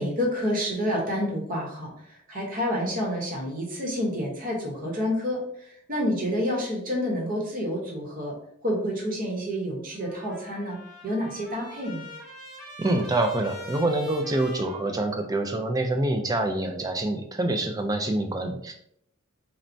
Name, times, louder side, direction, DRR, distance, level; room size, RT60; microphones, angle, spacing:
voice 1, 0.0-1.9 2.3-5.4 5.9-8.3 8.6-10.8 11.0-12.0, equal, 40° right, -1 dB, 0.9 m, -28 dB
Trumpet, 9.9-15.5, left 1 dB, ahead, 0.9 m, -44 dB
voice 2, 12.8-18.7, right 2 dB, 20° right, 5 dB, 0.3 m, -26 dB
4.3 x 2.1 x 2.5 m, 0.70 s
head